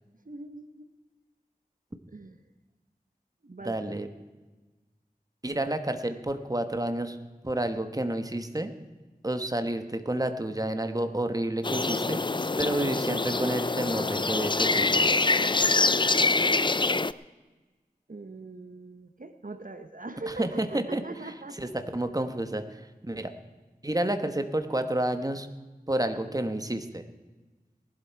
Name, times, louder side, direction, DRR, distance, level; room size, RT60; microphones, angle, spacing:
voice 1, 0.3-0.9 2.1-2.4 3.4-4.0 18.1-21.6, right 2 dB, 60° right, 8 dB, 0.9 m, -41 dB
voice 2, 3.6-4.1 5.4-7.2 7.4-8.7 9.2-12.2 12.6-15.0 20.3-23.3 23.8-25.5 25.9-27.0, right 1 dB, 25° right, 8 dB, 1.2 m, -30 dB
sound 1, 11.6-17.1, left 3 dB, 30° left, 0.4 m, -25 dB
19.0 x 11.5 x 4.6 m, 1.2 s
wide cardioid pair, 50°, 16 cm